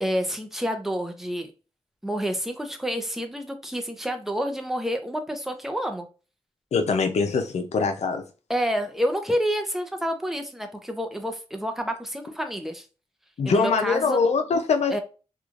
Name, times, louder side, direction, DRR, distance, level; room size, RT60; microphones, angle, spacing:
voice 1, 0.0-1.5 2.0-6.1 8.5-12.9 13.4-14.2 14.9-15.0, equal, 5° right, 0.5 m, -28 dB
voice 2, 6.7-8.2 13.4-15.0, left 4 dB, 85° left, 0.5 m, -23 dB
3.1 x 2.3 x 2.4 m
wide cardioid pair, 80°, 11 cm